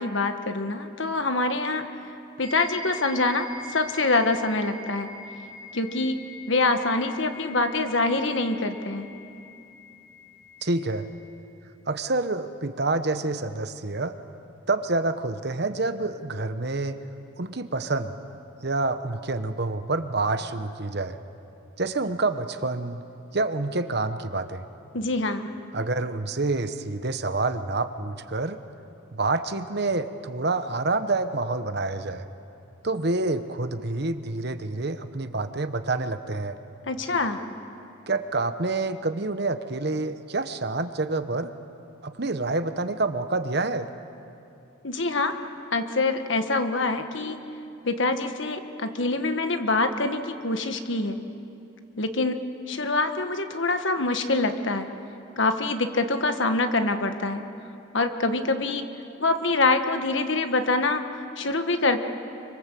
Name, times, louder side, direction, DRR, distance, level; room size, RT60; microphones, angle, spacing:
voice 1, 0.0-1.8 2.4-3.5 3.7-5.1 5.7-6.2 6.5-9.1 24.9-25.5 36.9-37.4 44.8-45.3 45.7-47.4 47.8-51.2 52.0-52.4 52.7-54.9 55.4-57.4 57.9-58.9 59.2-62.0, left 3 dB, 65° left, 7 dB, 1.5 m, -25 dB
sound 1, 2.4-11.1, left 2 dB, 85° left, 5.7 m, -43 dB
voice 2, 10.6-11.1 11.9-14.2 14.7-17.0 17.4-18.2 18.6-21.2 21.8-23.0 23.3-24.6 25.7-28.6 29.1-32.2 32.8-36.6 38.1-41.5 42.0-43.9, right 3 dB, 50° right, 10 dB, 1.1 m, -27 dB
26.0 x 25.0 x 7.7 m, 2.7 s
head